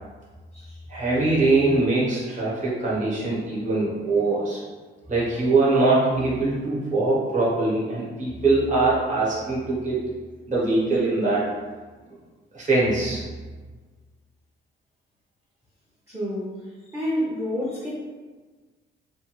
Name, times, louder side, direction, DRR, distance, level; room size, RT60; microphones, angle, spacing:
voice 1, 0.9-4.6 5.1-10.1 10.5-11.5 12.5-13.2, right 2 dB, 40° right, -7 dB, 1.2 m, -22 dB
voice 2, 16.1-17.9, equal, 15° right, -7 dB, 0.7 m, -29 dB
2.6 x 2.5 x 3.0 m, 1.3 s
cardioid pair, 90°, 20 cm